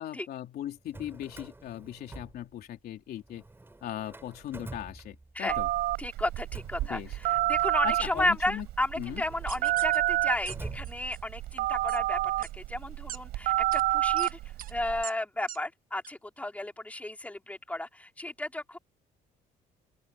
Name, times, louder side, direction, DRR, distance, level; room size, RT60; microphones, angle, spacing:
voice 1, 0.0-3.4 3.8-5.7 6.9-7.2 7.8-8.7 9.0-9.2, left 12 dB, 65° left, 3.2 m, -38 dB
Drawer open or close, 0.7-2.9 3.2-5.6 6.2-11.5, right 2 dB, 15° right, 6.2 m, -47 dB
Telephone, 5.5-15.0, right 16 dB, 80° right, 4.8 m, -29 dB
voice 2, 6.0-14.4 14.7-18.8, left 1 dB, 10° left, 4.3 m, -33 dB
sound 1, 9.5-10.0 10.5-10.6 10.8-11.2 11.9-12.0 12.4-12.5 13.1-13.2 13.7-13.8 14.2-14.3 14.6-14.7 15.0-15.1 15.5-15.6 16.0-16.1, right 10 dB, 55° right, 1.5 m, -41 dB
open air
cardioid pair, 110°, 17 cm